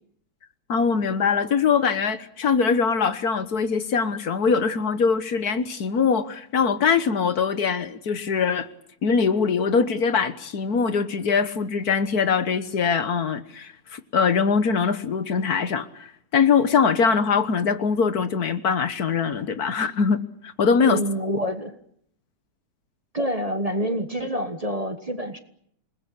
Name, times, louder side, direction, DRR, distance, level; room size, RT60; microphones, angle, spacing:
voice 1, 0.7-8.7 9.0-21.0, left 5 dB, 60° left, 11 dB, 1.7 m, -22 dB
voice 2, 20.8-21.8 23.1-25.4, equal, 25° right, 7 dB, 1.3 m, -27 dB
27.5 x 20.0 x 8.5 m, 0.70 s
omnidirectional pair, 1.9 m